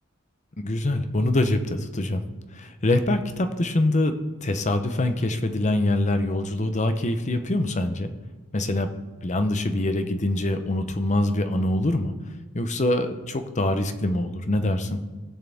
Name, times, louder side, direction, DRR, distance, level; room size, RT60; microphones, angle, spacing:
voice 1, 0.6-2.2 2.5-4.1 4.4-8.1 8.5-8.9 9.2-12.1 12.5-15.0, left 1 dB, 35° left, 8 dB, 0.8 m, -24 dB
19.0 x 6.5 x 3.5 m, 1.3 s
head